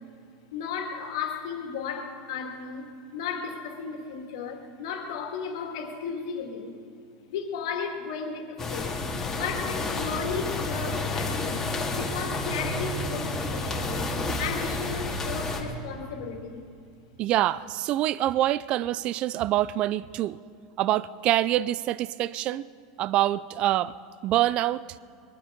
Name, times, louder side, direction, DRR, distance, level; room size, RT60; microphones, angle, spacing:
voice 1, 0.5-6.7 7.3-9.0 9.3-16.6, left 6 dB, 75° left, 2.4 m, -35 dB
sound 1, 8.6-15.6, left 2 dB, 15° left, 2.1 m, -30 dB
voice 2, 17.2-20.4 20.8-22.6 23.0-23.9 24.2-24.8, right 14 dB, 40° right, 0.4 m, -25 dB
22.0 x 12.5 x 5.2 m
supercardioid pair, 140°, 3 cm